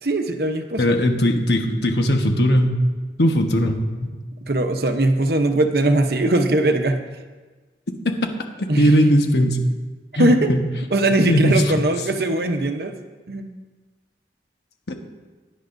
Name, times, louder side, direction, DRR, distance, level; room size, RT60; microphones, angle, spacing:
voice 1, 0.0-1.0 4.5-7.0 8.7-8.9 10.2-10.5 10.9-12.9 13.3-13.5, right 1 dB, 60° right, 5 dB, 0.8 m, -20 dB
voice 2, 0.8-2.8 3.2-4.1 8.8-9.6 10.1-10.6 11.3-11.6, equal, 75° left, 4 dB, 1.2 m, -18 dB
16.5 x 10.5 x 2.6 m, 1.3 s
head